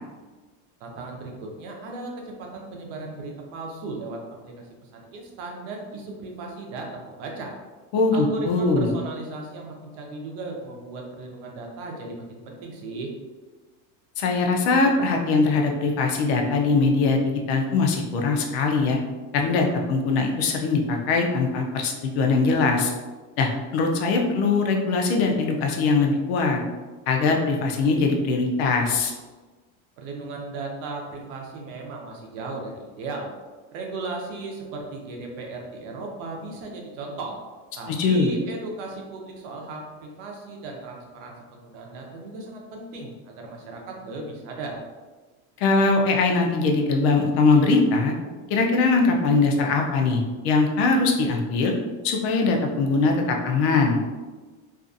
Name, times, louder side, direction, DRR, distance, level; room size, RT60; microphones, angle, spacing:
voice 1, 0.8-7.5 8.1-13.1 30.0-33.3 33.7-37.3 37.8-44.8, right 2 dB, 70° right, 1 dB, 0.7 m, -36 dB
voice 2, 7.9-8.9 14.2-17.2 17.5-19.0 19.3-22.9 23.4-26.6 27.1-29.1 37.9-38.3 45.6-48.1 48.5-51.7 52.0-54.0, left 3 dB, 55° left, 2 dB, 0.5 m, -21 dB
2.5 x 2.4 x 2.5 m, 1.3 s
cardioid pair, 175°, 38 cm